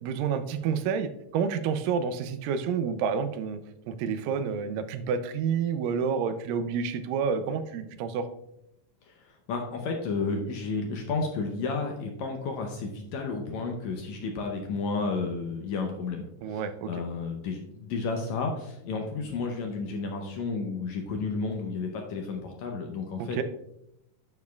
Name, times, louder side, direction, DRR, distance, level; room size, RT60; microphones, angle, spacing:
voice 1, 0.0-3.6 3.9-8.3 16.4-17.0 23.2-23.4, right 6 dB, 85° right, 11 dB, 2.3 m, -29 dB
voice 2, 9.1-16.6 16.9-23.4, left 4 dB, 75° left, 3 dB, 1.7 m, -32 dB
9.3 x 7.1 x 2.3 m, 0.81 s
omnidirectional pair, 3.8 m